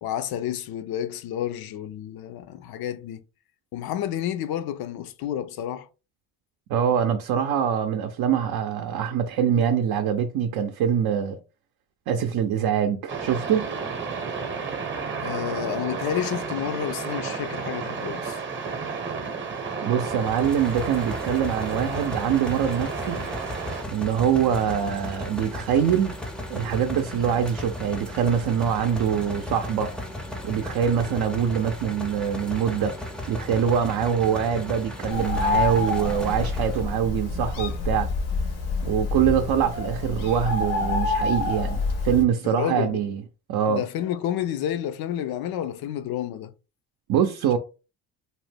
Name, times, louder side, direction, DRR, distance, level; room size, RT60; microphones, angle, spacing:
voice 1, 0.0-3.2 3.7-5.9 15.2-18.4 42.4-43.0 43.7-46.5, left 11 dB, 65° left, 0.5 m, -30 dB
voice 2, 6.7-11.4 12.1-13.7 19.8-23.3 23.9-26.2 26.5-29.9 30.4-32.9 33.3-38.1 38.8-43.2 43.5-43.8 47.1-47.6, right 8 dB, 60° right, 0.5 m, -24 dB
sound 1, 13.1-23.8, right 5 dB, 30° right, 0.8 m, -32 dB
sound 2, 20.1-37.0, left 1 dB, ahead, 0.5 m, -35 dB
Bird, 35.1-42.2, left 3 dB, 90° left, 1.1 m, -27 dB
2.6 x 2.1 x 3.2 m
cardioid pair, 85°, 39 cm